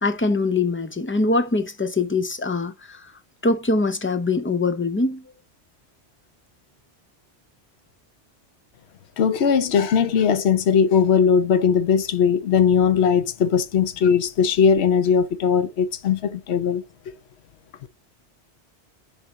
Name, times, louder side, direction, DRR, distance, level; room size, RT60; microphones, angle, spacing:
voice 1, 0.0-3.1 3.4-5.2, left 3 dB, 15° left, 0.5 m, -23 dB
voice 2, 9.2-17.1, left 7 dB, 70° left, 1.1 m, -19 dB
6.8 x 4.2 x 3.5 m
omnidirectional pair, 1.2 m